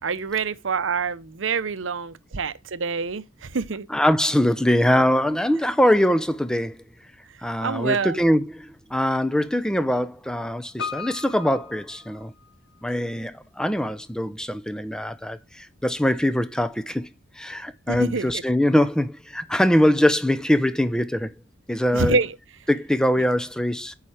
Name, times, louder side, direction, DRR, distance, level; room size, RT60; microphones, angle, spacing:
voice 1, 0.0-3.9 7.6-8.2 17.9-18.4 21.9-22.4, right 5 dB, 90° right, 0.8 m, -26 dB
voice 2, 3.9-6.8 7.4-12.3 12.8-17.0 17.4-21.3 21.7-22.2 22.7-23.9, equal, 5° left, 0.6 m, -22 dB
Piano, 10.8-12.8 13.1-13.2, left 5 dB, 80° left, 1.8 m, -36 dB
8.8 x 5.7 x 4.9 m
head